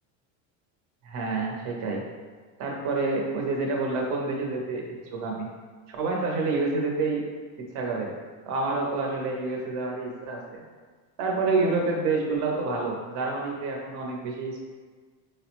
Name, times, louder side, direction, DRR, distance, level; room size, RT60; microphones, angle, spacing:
voice 1, 1.0-2.0 2.6-4.9 5.1-5.5 5.9-7.2 7.6-8.1 8.5-10.6 11.2-14.6, right 3 dB, 50° right, -1 dB, 0.7 m, -28 dB
4.6 x 2.0 x 2.9 m, 1.5 s
cardioid pair, 170°, 37 cm